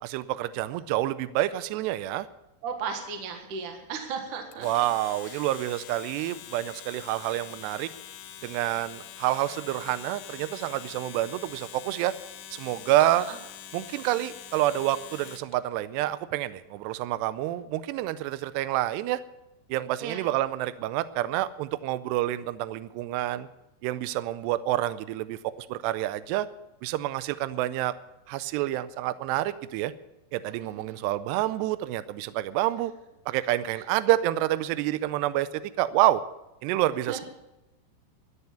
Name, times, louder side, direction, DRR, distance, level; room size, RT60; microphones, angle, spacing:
voice 1, 0.0-2.3 4.6-7.9 8.4-12.1 12.5-13.3 13.7-19.2 19.7-23.5 23.8-26.5 26.8-27.9 28.3-29.9 30.3-32.9 33.3-36.2 36.6-37.2, right 14 dB, 90° right, 15 dB, 2.4 m, -28 dB
voice 2, 2.6-4.7 5.3-5.4 13.0-13.4 20.0-20.2 30.6-31.0 33.7-33.8 37.1-37.2, right 6 dB, 60° right, 4 dB, 2.2 m, -36 dB
Domestic sounds home sounds, 4.5-15.5, left 11 dB, 75° left, 3.1 m, -44 dB
12.5 x 8.1 x 9.9 m, 0.93 s
omnidirectional pair, 5.5 m